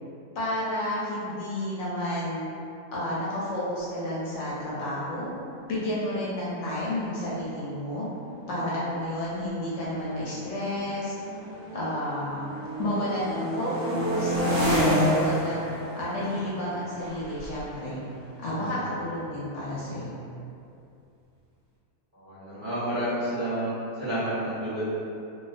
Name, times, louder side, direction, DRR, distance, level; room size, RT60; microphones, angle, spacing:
voice 1, 0.3-2.5 2.9-5.3 5.7-8.1 8.5-11.2 11.7-12.5 12.8-15.6 16.0-18.0 18.4-20.2, left 1 dB, 65° left, -8 dB, 0.8 m, -31 dB
sound 1, 6.6-6.7 6.9-7.3 8.0-12.0 12.3-19.0, equal, 75° right, 1.0 m, -30 dB
voice 2, 22.1-23.7 24.0-24.9, right 1 dB, 50° right, -12 dB, 0.7 m, -30 dB
2.3 x 2.3 x 2.4 m, 2.6 s
omnidirectional pair, 1.6 m